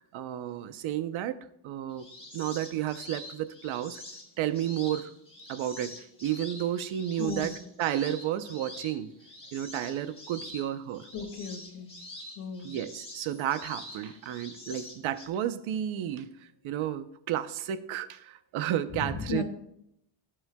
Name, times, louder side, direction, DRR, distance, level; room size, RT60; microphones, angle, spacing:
voice 1, 0.0-1.4 1.6-2.1 2.3-4.0 4.4-5.1 5.5-7.5 7.8-9.1 9.5-11.1 12.6-19.4, right 11 dB, 75° right, 12 dB, 0.9 m, -32 dB
sound 1, 1.9-15.3, left 1 dB, 10° left, 2.1 m, -46 dB
voice 2, 7.2-7.6 11.1-12.0 12.4-12.7 18.9-19.4, left 5 dB, 90° left, 4 dB, 2.0 m, -35 dB
15.5 x 7.8 x 2.3 m, 0.74 s
cardioid pair, 130°, 49 cm